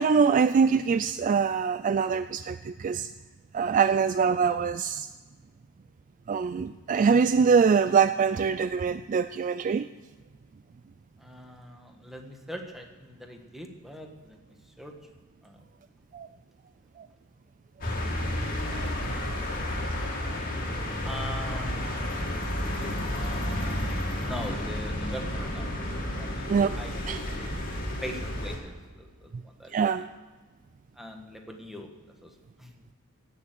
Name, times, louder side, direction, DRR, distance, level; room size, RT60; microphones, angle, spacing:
voice 1, 0.0-3.1 3.5-5.1 6.3-9.9 16.1-16.3 17.0-17.1 18.7-19.1 26.5-26.8 27.1-27.2 29.7-30.1, right 6 dB, 35° right, 12 dB, 0.3 m, -24 dB
voice 2, 11.2-14.4 14.8-14.9 15.4-15.6 21.0-25.7 26.1-26.9 27.2-29.8 31.0-31.9 32.2-32.3 32.6-32.7, equal, ahead, 3 dB, 1.4 m, -42 dB
sound 1, 17.8-28.6, left 1 dB, 40° left, 2.3 m, -31 dB
16.5 x 6.8 x 7.5 m, 1.4 s
head